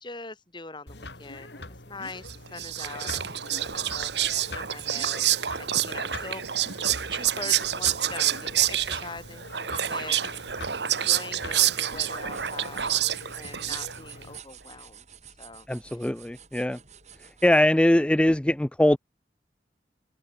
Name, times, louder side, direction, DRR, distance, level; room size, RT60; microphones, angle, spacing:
voice 1, 0.0-4.1 4.5-6.5 7.1-10.5 10.8-13.1 13.3-15.1 15.4-16.0, left 3 dB, 25° left, 3.1 m, -43 dB
sound 1, 0.9-14.4, left 2 dB, 70° left, 7.7 m, -44 dB
Whispering, 2.3-14.2, right 11 dB, 70° right, 1.8 m, -28 dB
sound 2, 12.0-17.6, right 8 dB, 40° right, 7.4 m, -49 dB
voice 2, 15.7-16.8 17.4-19.0, left 1 dB, 5° left, 0.3 m, -21 dB
open air
head